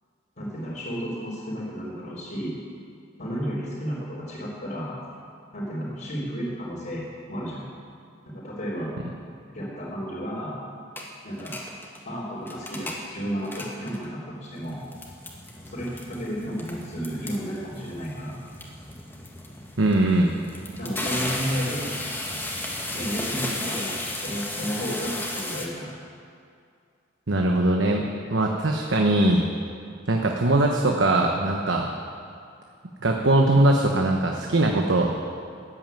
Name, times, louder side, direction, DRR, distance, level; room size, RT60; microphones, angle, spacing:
voice 1, 0.4-2.5 3.2-5.0 5.5-7.6 8.3-9.0 9.5-10.6 11.2-11.6 12.1-14.8 15.6-18.4 20.8-21.9 22.9-25.9, equal, 55° left, -9 dB, 3.8 m, -32 dB
sound 1, 11.0-11.1 11.3-12.0 12.4-13.0 13.4-14.0 14.5-25.7, left 1 dB, 10° left, 1.8 m, -34 dB
voice 2, 19.8-20.3 27.3-29.4 30.1-31.9 33.0-35.1, right 2 dB, 70° right, 1 dB, 1.1 m, -21 dB
14.5 x 9.3 x 9.2 m, 2.3 s
head